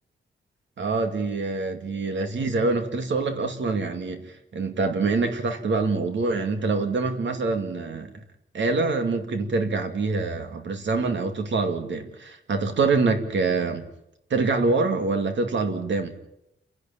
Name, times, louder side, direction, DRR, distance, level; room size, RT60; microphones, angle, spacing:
voice 1, 0.8-8.1 8.5-13.9 14.3-16.1, right 3 dB, 60° right, 6 dB, 2.4 m, -25 dB
29.5 x 11.5 x 8.7 m, 0.84 s
wide cardioid pair, 170°, 21 cm